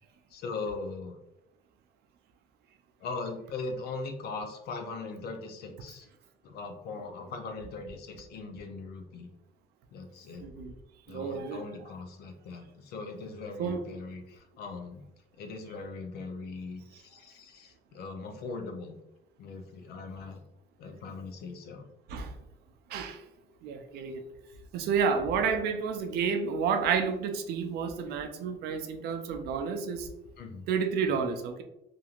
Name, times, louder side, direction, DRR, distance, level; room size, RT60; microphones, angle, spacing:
voice 1, 0.3-1.2 3.0-6.1 6.4-9.3 9.9-10.5 11.1-15.0 15.4-19.0 19.4-20.4 20.8-21.9 30.4-30.7 31.1-31.2, left 3 dB, 70° left, 5 dB, 0.5 m, -40 dB
voice 2, 10.4-10.7 11.1-11.6 13.6-13.8 22.1-22.3 22.9-23.2 23.6-24.2 24.7-30.1 30.7-31.6, right 6 dB, 75° right, 6 dB, 0.5 m, -30 dB
2.9 x 2.5 x 2.4 m, 0.88 s
cardioid pair, 110°, 17 cm